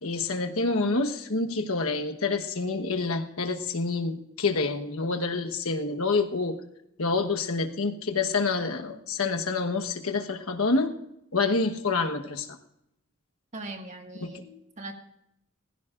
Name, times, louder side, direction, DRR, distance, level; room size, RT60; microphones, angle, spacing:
voice 1, 0.0-6.6 7.0-10.9 11.3-12.5 14.2-14.6, left 3 dB, 80° left, 6 dB, 1.2 m, -27 dB
voice 2, 13.5-14.4 14.8-14.9, right 2 dB, 30° right, 4 dB, 1.8 m, -39 dB
20.0 x 16.0 x 2.5 m, 0.81 s
head